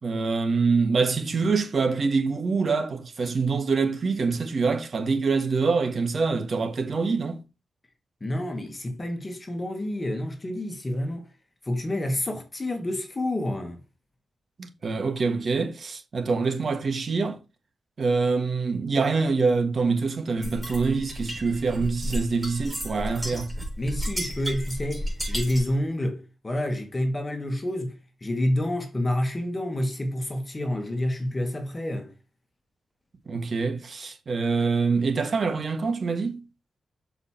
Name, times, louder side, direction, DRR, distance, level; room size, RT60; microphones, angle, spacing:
voice 1, 0.0-7.4 14.6-17.4 18.0-23.5 33.3-36.4, right 4 dB, 50° right, 1.4 m, -25 dB
voice 2, 8.2-11.3 11.6-13.8 23.8-27.9 28.2-32.1, left 1 dB, 25° left, 1.7 m, -28 dB
sound 1, 20.4-25.8, equal, 5° right, 4.6 m, -32 dB
6.7 x 4.8 x 4.4 m
cardioid pair, 90°, 0 cm